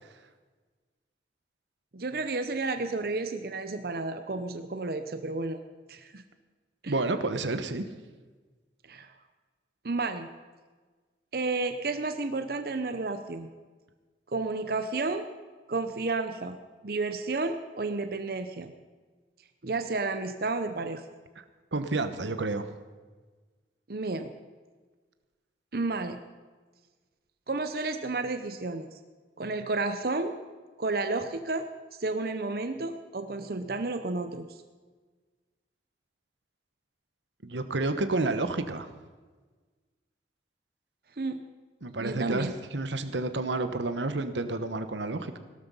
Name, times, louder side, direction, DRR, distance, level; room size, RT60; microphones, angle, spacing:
voice 1, 1.9-5.6 5.9-6.2 6.8-6.9 8.9-9.1 9.8-10.3 11.3-13.5 14.3-15.3 15.7-16.6 16.8-18.7 19.6-21.0 23.9-24.3 25.7-26.2 27.5-29.0 29.4-30.3 30.8-31.7 31.9-34.6 41.2-41.4 42.0-42.5, right 3 dB, 55° right, 8 dB, 0.8 m, -31 dB
voice 2, 6.9-7.8 21.7-22.7 37.4-38.9 41.8-45.4, right 2 dB, 90° right, 10 dB, 1.1 m, -30 dB
17.0 x 12.5 x 5.5 m, 1.4 s
head